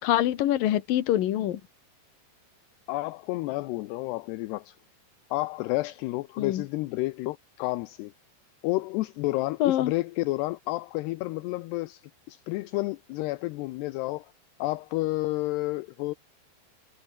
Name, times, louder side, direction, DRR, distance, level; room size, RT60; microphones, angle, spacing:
voice 1, 0.0-1.6 6.4-6.6 9.6-9.9, left 13 dB, 60° left, 3.0 m, -25 dB
voice 2, 2.9-4.8 5.3-8.1 8.6-12.0 12.3-14.3 14.6-16.1, left 20 dB, 80° left, 2.7 m, -30 dB
omnidirectional pair, 5.0 m